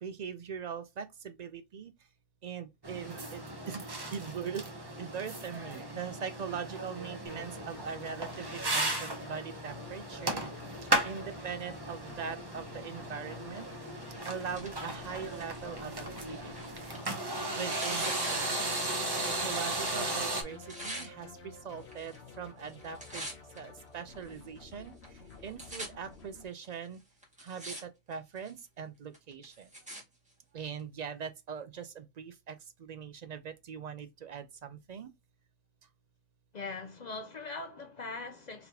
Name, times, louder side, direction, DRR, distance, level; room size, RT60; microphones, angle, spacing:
voice 1, 0.0-1.9 2.4-4.6 5.0-10.4 10.8-13.7 14.3-16.5 17.6-18.7 19.4-20.6 20.8-23.3 23.6-24.9 25.4-27.0 27.4-29.7 30.5-35.1, right 7 dB, 65° right, 0.4 m, -41 dB
sound 1, 2.8-20.4, right 2 dB, 25° right, 0.7 m, -36 dB
sound 2, 7.3-26.5, left 5 dB, 70° left, 1.0 m, -51 dB
Tearing, 14.0-19.5 19.7-21.1 21.8-22.3 22.6-23.6 24.2-24.3 25.0-25.1 25.3-25.9 26.6-26.7 27.2-27.8 28.1-28.6 29.1-30.0 30.8-30.9, right 1 dB, 5° right, 1.6 m, -44 dB
voice 2, 36.5-38.7, left 3 dB, 50° left, 0.6 m, -41 dB
3.9 x 3.4 x 2.8 m
omnidirectional pair, 1.2 m